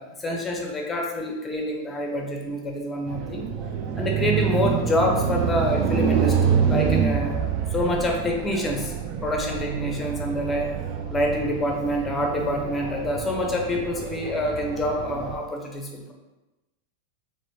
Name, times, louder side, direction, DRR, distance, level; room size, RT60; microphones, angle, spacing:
voice 1, 0.0-3.5 4.0-7.4 7.7-8.9 9.2-10.7 11.1-16.1, left 1 dB, 15° left, 0 dB, 0.6 m, -27 dB
sound 1, 3.1-15.4, right 7 dB, 40° right, 0.3 m, -27 dB
3.9 x 2.2 x 3.2 m, 1.1 s
figure-of-eight pair, 90°, 0 cm